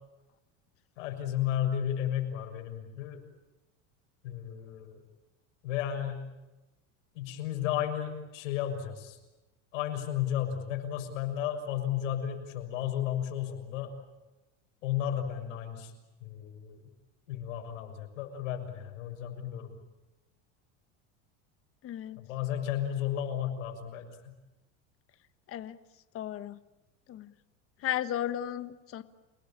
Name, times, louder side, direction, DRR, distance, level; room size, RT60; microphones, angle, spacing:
voice 1, 1.0-3.2 4.2-5.0 5.6-6.2 7.1-9.2 9.7-13.9 14.8-15.9 16.2-16.8 17.3-19.7 22.2-24.3, left 10 dB, 85° left, 5 dB, 6.6 m, -33 dB
voice 2, 21.8-22.2 25.5-25.7 26.1-26.6 27.1-27.3 27.8-29.0, left 11 dB, 35° left, 11 dB, 1.4 m, -34 dB
29.0 x 20.5 x 8.8 m, 1.0 s
supercardioid pair, 135°, 37 cm